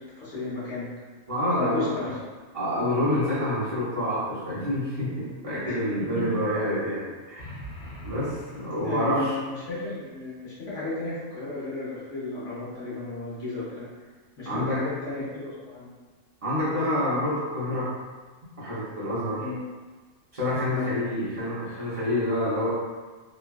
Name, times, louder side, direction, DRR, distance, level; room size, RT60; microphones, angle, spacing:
voice 1, 0.2-0.9 1.6-2.1 3.1-3.3 5.6-5.8 6.1-6.2 8.8-9.4 9.7-13.9 14.4-15.9 19.4-19.6 20.7-20.9, left 2 dB, 60° left, -9 dB, 1.3 m, -34 dB
voice 2, 1.3-2.0 2.5-7.6 8.0-9.4 14.4-14.8 16.4-17.9 18.6-19.5 20.3-22.7, left 1 dB, 40° right, -10 dB, 0.5 m, -27 dB
sound 1, 7.4-9.4, equal, 85° left, 1.2 m, -43 dB
3.1 x 2.2 x 2.3 m, 1.4 s
omnidirectional pair, 1.5 m